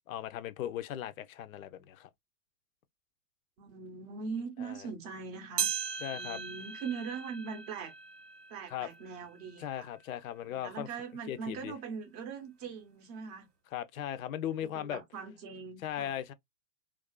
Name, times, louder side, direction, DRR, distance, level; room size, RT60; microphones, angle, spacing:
voice 1, 0.1-2.1 4.6-4.9 6.0-6.4 8.7-8.9 9.6-10.9 11.3-11.7 13.7-15.0 15.8-16.3, left 11 dB, 60° left, 0.5 m, -38 dB
voice 2, 3.6-5.7 6.1-7.9 8.5-9.9 10.5-13.5 14.7-16.1, right 5 dB, 25° right, 0.5 m, -41 dB
sound 1, 5.6-10.2 10.7-10.8 11.6-11.7 12.7-12.8, right 8 dB, 90° right, 0.8 m, -39 dB
2.4 x 2.3 x 2.2 m
hypercardioid pair, 140°, 46 cm